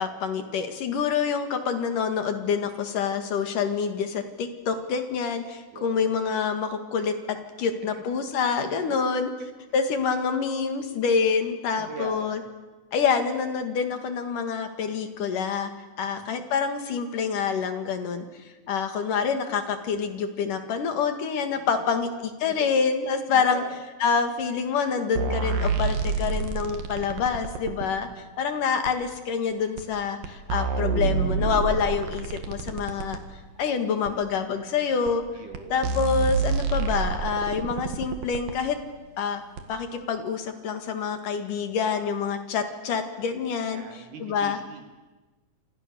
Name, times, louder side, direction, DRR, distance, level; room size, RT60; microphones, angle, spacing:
voice 1, 0.0-9.3 9.7-12.4 12.9-15.7 16.0-18.3 18.7-23.6 24.0-33.2 33.6-35.2 35.7-38.8 39.2-39.4 39.7-44.6, left 6 dB, 70° left, 7 dB, 3.5 m, -27 dB
voice 2, 5.7-6.0 7.9-8.0 9.1-9.3 11.7-12.5 16.0-16.2 22.5-22.7 23.3-23.7 35.3-35.9 43.7-45.0, right 4 dB, 65° right, 5 dB, 4.2 m, -41 dB
sound 1, 25.2-27.9 28.9-29.0 29.8-29.9 30.2-33.2 34.1-34.2 35.1-35.2 35.5-35.6 35.8-38.6 39.6-39.7, right 4 dB, 85° right, 3.7 m, -28 dB
29.0 x 27.0 x 6.9 m, 1.2 s
omnidirectional pair, 3.9 m